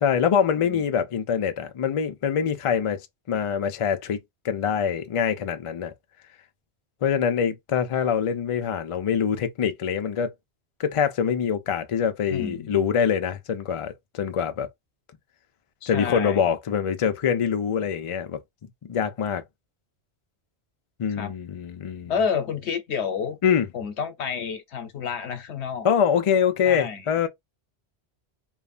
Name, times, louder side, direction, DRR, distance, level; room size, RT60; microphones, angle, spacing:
voice 1, 0.0-3.0 3.3-4.2 4.4-5.9 7.0-10.3 10.8-14.7 15.9-18.4 18.9-19.4 21.0-22.1 23.4-23.7 25.8-27.3, left 7 dB, 60° left, 0.3 m, -24 dB
voice 2, 12.3-12.8 15.8-16.5 21.2-21.3 22.1-23.4 23.7-25.9 26.6-27.0, left 6 dB, 85° left, 1.0 m, -29 dB
3.2 x 2.1 x 2.4 m
omnidirectional pair, 1.1 m